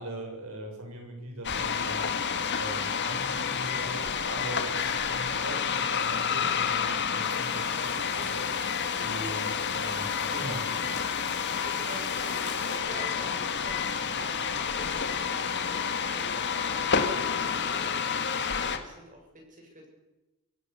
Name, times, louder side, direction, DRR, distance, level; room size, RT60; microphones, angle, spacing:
voice 1, 0.0-2.1 2.5-8.4 9.0-10.6, right 1 dB, 75° right, 2 dB, 7.0 m, -40 dB
Car Parking Underground, 1.4-18.8, left 6 dB, 55° left, 1.9 m, -29 dB
sound 1, 7.2-12.8, left 6 dB, 80° left, 5.6 m, -44 dB
voice 2, 11.3-19.9, right 1 dB, 35° right, 1 dB, 7.2 m, -48 dB
25.5 x 16.5 x 7.0 m, 1.1 s
head